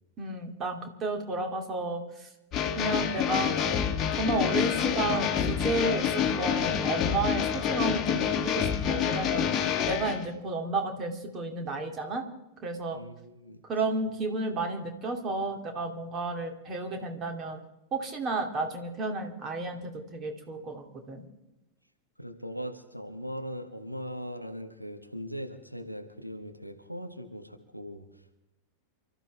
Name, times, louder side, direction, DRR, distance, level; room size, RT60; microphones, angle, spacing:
voice 1, 0.2-2.3 2.8-3.6 4.2-9.5 9.8-12.2 12.6-13.0 13.7-17.6 17.9-21.2, right 2 dB, 30° right, 4 dB, 2.6 m, -32 dB
sound 1, 2.5-10.3, left 8 dB, 30° left, 1.5 m, -27 dB
voice 2, 12.9-13.6 13.9-14.0 22.2-28.4, equal, 90° right, 5 dB, 1.4 m, -40 dB
28.5 x 14.0 x 3.4 m, 0.93 s
figure-of-eight pair, 90°, 0 cm